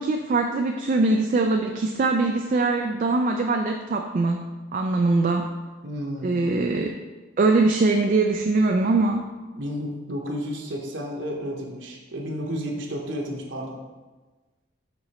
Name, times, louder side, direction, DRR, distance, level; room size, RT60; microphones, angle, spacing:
voice 1, 0.0-4.4 4.7-5.5 6.2-7.0 7.4-9.2, right 3 dB, 40° right, 4 dB, 0.3 m, -22 dB
voice 2, 5.8-6.4 9.6-13.8, equal, 65° right, 0 dB, 1.0 m, -32 dB
5.4 x 4.8 x 4.1 m, 1.2 s
head